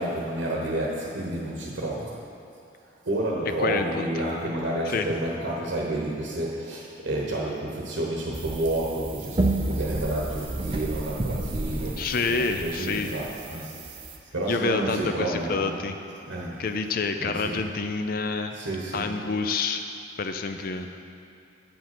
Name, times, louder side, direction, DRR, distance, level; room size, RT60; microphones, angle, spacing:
voice 1, 0.0-2.2 3.0-14.0 14.3-15.8 16.3-16.6 17.2-17.7 18.5-19.2, right 1 dB, 70° right, -3 dB, 1.0 m, -30 dB
voice 2, 3.6-4.1 4.9-5.1 12.0-13.1 14.5-15.9 16.6-18.6 18.9-19.8 20.2-20.9, left 4 dB, 45° left, 7 dB, 0.4 m, -28 dB
sound 1, 8.3-14.2, right 2 dB, 25° right, 0.5 m, -31 dB
8.5 x 5.1 x 6.0 m, 2.7 s
head